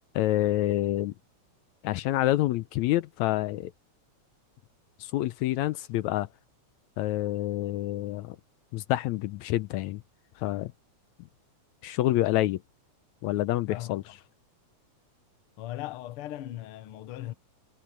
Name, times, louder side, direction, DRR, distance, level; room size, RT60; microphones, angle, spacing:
voice 1, 0.2-1.1 1.8-3.7 5.0-6.3 7.0-8.4 8.7-10.0 10.4-10.7 11.8-12.6 13.2-14.0, left 15 dB, 80° left, 1.9 m, -27 dB
voice 2, 13.7-14.2 15.6-17.3, left 14 dB, 65° left, 1.5 m, -38 dB
omnidirectional pair, 3.4 m